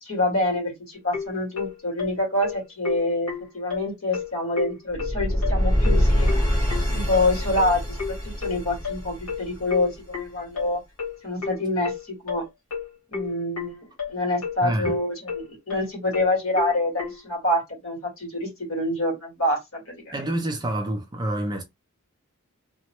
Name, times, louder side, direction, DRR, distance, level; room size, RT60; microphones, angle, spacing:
voice 1, 0.0-6.3 6.9-10.8 11.2-12.4 13.1-20.2, left 1 dB, 65° left, 1.8 m, -26 dB
sound 1, 1.1-17.2, left 6 dB, 80° left, 1.4 m, -32 dB
sound 2, 4.9-10.0, equal, 15° left, 1.1 m, -24 dB
voice 2, 14.6-15.0 20.1-21.6, right 1 dB, 20° right, 0.4 m, -27 dB
2.9 x 2.1 x 2.9 m
head